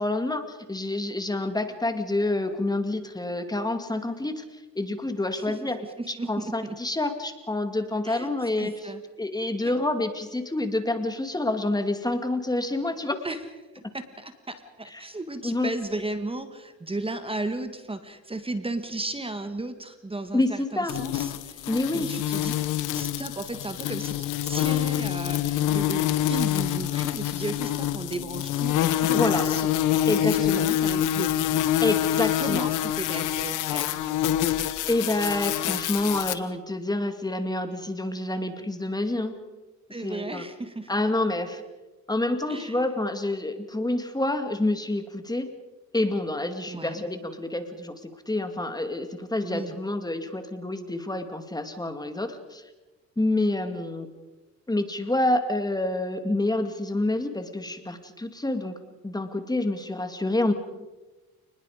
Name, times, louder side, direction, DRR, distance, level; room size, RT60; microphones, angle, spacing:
voice 1, 0.0-5.8 6.1-8.7 9.2-13.2 15.4-15.7 20.3-20.9 21.7-22.1 29.2-29.5 30.1-30.7 31.8-32.7 34.9-39.4 40.0-40.4 40.9-41.6 42.1-45.5 45.9-52.6 53.2-54.1 54.7-58.8 59.0-60.5, left 2 dB, 15° left, 7 dB, 2.4 m, -28 dB
voice 2, 5.3-6.8 8.0-8.3 8.6-9.0 9.6-9.7 13.2-13.4 13.7-22.5 22.9-29.6 29.9-31.7 32.4-34.1 39.9-41.0 42.5-42.9 46.7-47.0 49.4-49.8, right 2 dB, 20° right, 9 dB, 1.8 m, -35 dB
sound 1, 20.9-36.3, left 12 dB, 90° left, 1.2 m, -26 dB
29.0 x 20.5 x 5.1 m, 1.1 s
cardioid pair, 90°, 30 cm